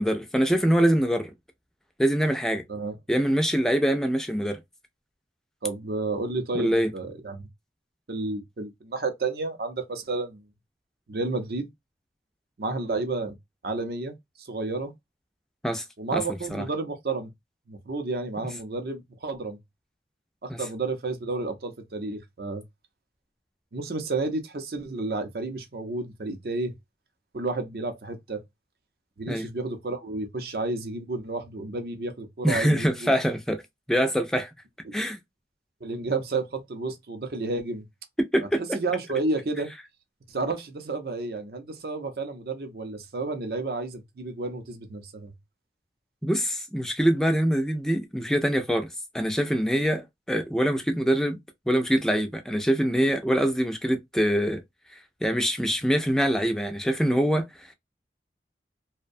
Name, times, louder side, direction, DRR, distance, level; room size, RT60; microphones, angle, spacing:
voice 1, 0.0-1.3 2.0-2.6 3.1-4.6 6.5-6.9 15.6-15.8 16.1-16.2 16.5-16.6 20.5-20.6 29.3-29.5 32.4-33.6 33.9-34.5 34.9-35.2 38.3-38.8 46.2-48.9 49.1-51.4 51.7-54.6 55.2-57.7, equal, 5° left, 0.3 m, -24 dB
voice 2, 5.6-7.5 8.1-10.4 11.1-11.7 12.6-13.3 13.6-14.9 16.0-17.3 17.7-19.6 20.4-22.6 23.7-26.7 27.3-28.4 29.2-33.1 34.8-34.9 35.8-37.8 38.7-39.7 40.3-45.3, right 3 dB, 60° right, 0.6 m, -31 dB
2.6 x 2.1 x 2.5 m
head